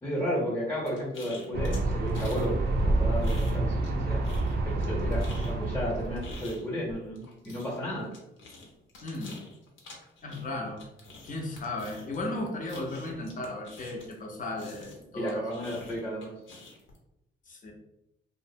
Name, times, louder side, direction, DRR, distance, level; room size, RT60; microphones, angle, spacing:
voice 1, 0.0-4.3 4.7-8.1 15.1-16.3, equal, 10° left, -6 dB, 0.8 m, -33 dB
sound 1, 0.9-2.5 2.8-4.0 4.2-14.2 14.6-17.0, left 3 dB, 75° left, 0.8 m, -48 dB
sound 2, 1.5-6.5, right 2 dB, 55° right, 0.4 m, -28 dB
voice 2, 9.0-9.3 10.2-10.8 11.2-15.5 17.5-17.7, left 1 dB, 40° left, 1 dB, 0.6 m, -35 dB
2.6 x 2.0 x 2.6 m, 0.88 s
cardioid pair, 90°, 20 cm